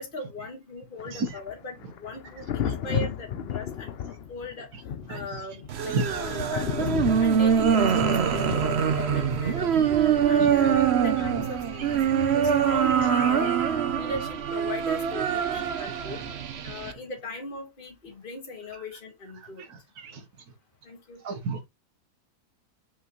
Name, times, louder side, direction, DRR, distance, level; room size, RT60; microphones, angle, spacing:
voice 1, 0.0-3.9 4.3-4.7 5.1-6.9 7.2-9.7 10.0-12.0 12.3-13.5 13.9-16.2 16.6-19.6 20.8-21.2, left 2 dB, 35° left, 1.9 m, -38 dB
Thunder, 1.0-14.7 16.3-16.5, left 9 dB, 60° left, 0.6 m, -36 dB
voice 2, 5.1-5.4 5.9-6.2 10.4-10.9 11.8-12.4 12.9-13.7 16.1-16.2 19.4-20.3 21.2-21.7, right 3 dB, 75° right, 1.7 m, -35 dB
sound 1, 5.7-16.9, right 8 dB, 50° right, 0.9 m, -24 dB
5.7 x 5.4 x 3.1 m
omnidirectional pair, 1.7 m